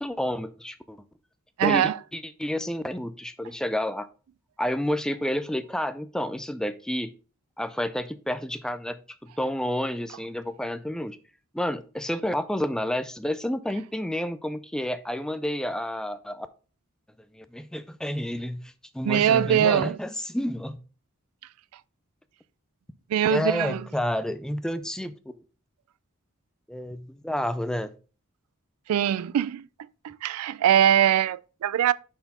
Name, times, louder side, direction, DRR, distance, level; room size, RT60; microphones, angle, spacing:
voice 1, 0.0-1.0 1.6-4.1 4.6-7.1 7.6-11.2 11.5-16.5 17.3-20.8 23.3-25.1 26.7-27.9, left 1 dB, 5° left, 0.3 m, -30 dB
voice 2, 1.6-2.0 19.0-20.0 23.1-23.8 28.9-29.7 30.0-31.9, right 10 dB, 90° right, 0.3 m, -22 dB
5.7 x 4.4 x 4.1 m
head